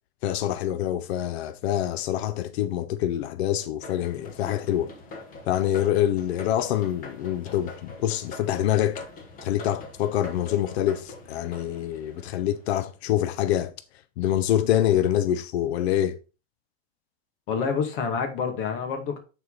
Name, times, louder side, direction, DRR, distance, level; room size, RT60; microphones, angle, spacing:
voice 1, 0.2-4.9 5.4-9.0 9.4-13.7 14.2-16.2, left 11 dB, 85° left, 0.7 m, -25 dB
sound 1, 3.8-12.9, left 3 dB, 25° left, 1.4 m, -43 dB
voice 2, 17.5-19.2, left 6 dB, 60° left, 2.3 m, -27 dB
9.5 x 4.6 x 4.0 m
supercardioid pair, 160°, 31 cm